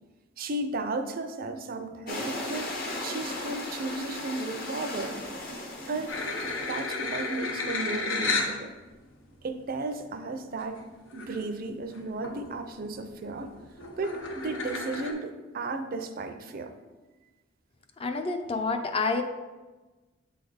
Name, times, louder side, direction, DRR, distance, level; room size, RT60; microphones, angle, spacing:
voice 1, 0.4-2.7 3.0-5.2 5.9-6.2 6.7-8.7 9.4-10.9 11.1-13.5 14.0-16.7, right 2 dB, 50° right, 7 dB, 0.5 m, -34 dB
sound 1, 2.1-7.5, left 1 dB, 50° left, 1.1 m, -37 dB
sound 2, 6.1-8.6 9.3-9.4 10.8-10.9 11.1-11.5 11.9-12.4 12.8-15.1, left 3 dB, 80° left, 0.9 m, -32 dB
voice 2, 18.0-19.2, left 4 dB, 30° left, 5 dB, 0.5 m, -28 dB
7.7 x 3.4 x 3.9 m, 1.2 s
head